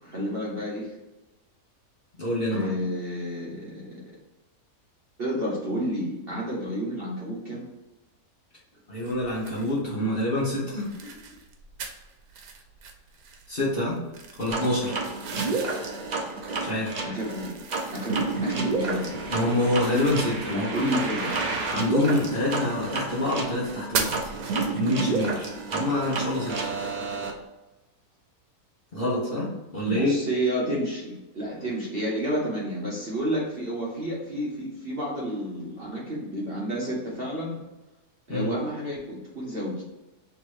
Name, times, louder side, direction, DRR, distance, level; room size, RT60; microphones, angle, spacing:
voice 1, 0.0-1.0 2.5-4.1 5.2-7.7 11.0-11.1 17.0-17.6 17.9-19.1 20.5-21.3 29.8-37.6 38.3-39.8, equal, 45° right, -5 dB, 1.0 m, -30 dB
voice 2, 2.2-2.7 8.9-10.9 13.5-14.0 14.4-14.9 16.6-16.9 19.3-20.9 21.7-24.1 24.7-26.6 28.9-30.1 38.3-38.5, left 1 dB, 40° left, -6 dB, 1.3 m, -26 dB
sound 1, 9.0-27.4, right 6 dB, 85° right, 1.3 m, -40 dB
sound 2, 14.5-27.3, right 3 dB, 70° right, 0.4 m, -30 dB
3.5 x 2.9 x 4.6 m, 1.1 s
omnidirectional pair, 1.7 m